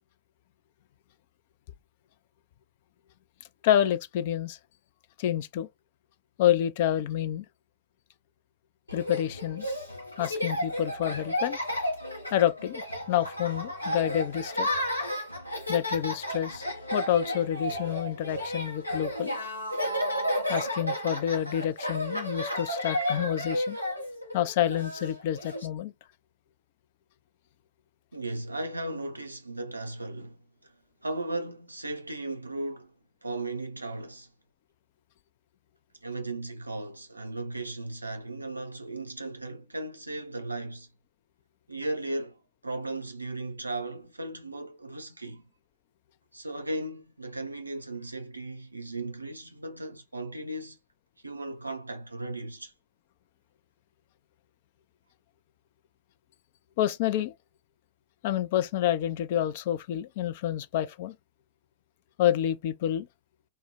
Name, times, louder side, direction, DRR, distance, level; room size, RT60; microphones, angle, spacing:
voice 1, 3.6-4.6 5.2-5.7 6.4-7.5 8.9-9.7 10.2-11.6 12.3-14.7 15.7-16.7 16.9-19.3 20.5-23.8 24.3-25.9 56.8-57.3 58.2-61.2 62.2-63.1, left 11 dB, 50° left, 0.3 m, -28 dB
Laughter, 8.9-25.7, equal, 85° left, 0.7 m, -32 dB
voice 2, 28.1-30.4 31.0-32.9 33.2-34.3 36.0-40.9 41.7-42.4 42.6-45.5 46.3-50.8 51.2-52.7, right 2 dB, 85° right, 0.5 m, -36 dB
2.2 x 2.1 x 3.3 m
figure-of-eight pair, 90°, 0 cm